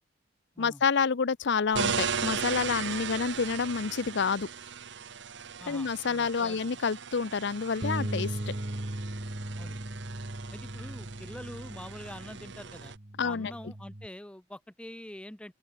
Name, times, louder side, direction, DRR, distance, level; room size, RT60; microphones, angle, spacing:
voice 1, 0.6-4.5 5.7-8.3 13.2-13.7, left 5 dB, 60° left, 0.6 m, -28 dB
sound 1, 1.7-13.0, right 6 dB, 65° right, 1.3 m, -37 dB
voice 2, 5.6-6.6 9.6-9.8 10.5-12.9 13.2-15.5, left 1 dB, 5° left, 0.6 m, -45 dB
Bass guitar, 7.8-14.1, right 1 dB, 35° right, 1.7 m, -38 dB
open air
head